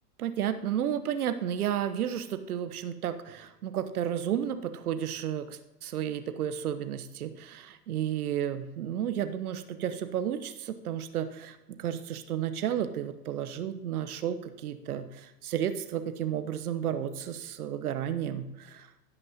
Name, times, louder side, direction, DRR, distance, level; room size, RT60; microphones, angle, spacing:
voice 1, 0.2-18.9, right 9 dB, 65° right, 10 dB, 1.1 m, -32 dB
16.0 x 5.9 x 4.0 m, 1.0 s
figure-of-eight pair, 105°, 48 cm